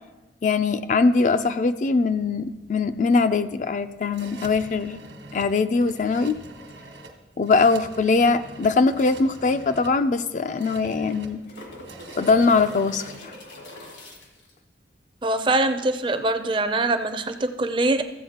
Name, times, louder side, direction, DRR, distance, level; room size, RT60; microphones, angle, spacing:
voice 1, 0.4-5.0 5.3-6.4 7.4-11.4 12.2-13.3, left 4 dB, 40° left, 11 dB, 0.3 m, -21 dB
sound 1, 1.8-13.2, right 2 dB, 75° right, 1.2 m, -45 dB
sound 2, 10.9-14.5 17.1-17.2, left 1 dB, 70° left, 1.7 m, -43 dB
voice 2, 15.2-18.0, right 2 dB, 25° right, 9 dB, 0.4 m, -23 dB
15.0 x 7.8 x 2.9 m, 1.2 s
head